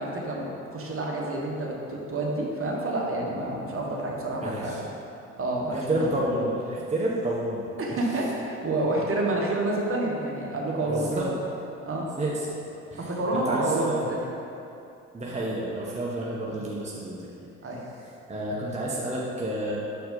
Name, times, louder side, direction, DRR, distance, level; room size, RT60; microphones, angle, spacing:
voice 1, 0.0-4.7 5.4-6.1 7.8-11.4 11.8-12.0 13.0-14.2 16.4-16.6 17.6-17.8, right 2 dB, 35° right, -2 dB, 1.3 m, -28 dB
voice 2, 4.4-4.8 5.7-8.0 10.8-11.3 12.2-12.6 12.9-14.1 15.1-17.3 17.6-17.7 18.3-19.8, right 1 dB, 20° right, -5 dB, 1.0 m, -30 dB
6.5 x 4.6 x 3.9 m, 2.7 s
hypercardioid pair, 50°, 38 cm